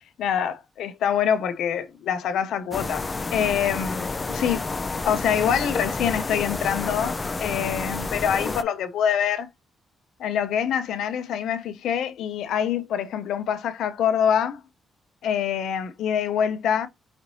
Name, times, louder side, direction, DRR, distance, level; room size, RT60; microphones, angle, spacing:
voice 1, 0.0-4.7 5.0-9.5 10.2-14.6 15.2-16.9, left 8 dB, 85° left, 0.5 m, -25 dB
sound 1, 2.7-8.6, left 3 dB, 20° left, 0.3 m, -29 dB
5.0 x 3.1 x 2.6 m
cardioid pair, 155°, 0 cm